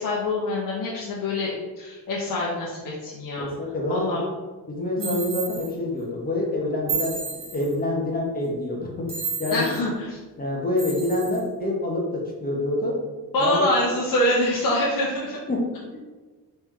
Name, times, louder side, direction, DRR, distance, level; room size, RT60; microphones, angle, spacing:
voice 1, 0.0-3.5 3.9-4.2 5.0-5.2 9.5-10.2 13.3-15.4, left 1 dB, 60° left, -5 dB, 0.8 m, -25 dB
voice 2, 3.4-4.2 4.7-7.2 7.5-9.1 9.4-9.8 10.4-13.0 13.4-13.8 15.5-15.6 15.9-16.0, left 1 dB, 25° left, -2 dB, 0.7 m, -26 dB
sound 1, 5.0-5.7 6.9-7.8 9.1-9.8 10.8-11.4, right 4 dB, 15° right, 1.2 m, -31 dB
3.2 x 3.1 x 3.6 m, 1.3 s
cardioid pair, 135°, 38 cm